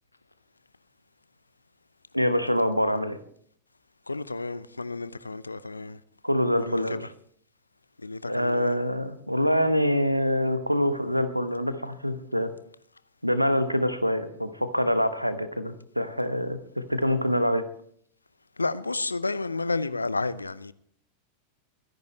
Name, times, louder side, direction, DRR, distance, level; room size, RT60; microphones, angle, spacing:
voice 1, 2.1-3.2 6.2-7.1 8.2-12.5 13.2-17.6, equal, 90° right, 1.1 m, -25 dB
voice 2, 4.1-6.0 6.6-7.1 8.0-8.7 18.6-20.7, left 3 dB, 80° left, 0.6 m, -31 dB
23.5 x 10.5 x 3.1 m
figure-of-eight pair, 90°, 0 cm